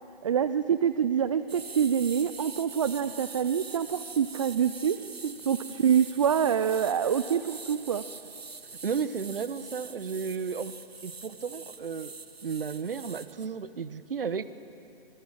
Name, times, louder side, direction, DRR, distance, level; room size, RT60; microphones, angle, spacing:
voice 1, 0.2-5.0 5.5-8.0, right 8 dB, 35° right, 12 dB, 0.5 m, -26 dB
sound 1, 1.5-13.5, right 4 dB, 85° right, 1.2 m, -44 dB
voice 2, 8.8-12.1 12.4-14.4, right 6 dB, 65° right, 14 dB, 1.1 m, -33 dB
26.5 x 22.5 x 7.4 m, 2.8 s
figure-of-eight pair, 140°, 30 cm